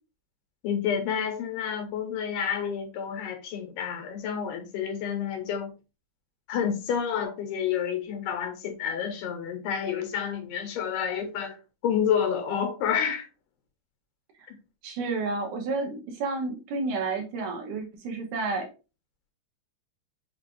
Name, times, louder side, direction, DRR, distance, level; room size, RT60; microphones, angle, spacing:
voice 1, 0.6-5.7 6.5-11.6 11.8-13.3 14.5-14.6, left 8 dB, 85° left, 2.5 m, -29 dB
voice 2, 14.8-18.7, right 3 dB, 75° right, 2.1 m, -31 dB
5.8 x 2.4 x 3.3 m
omnidirectional pair, 3.7 m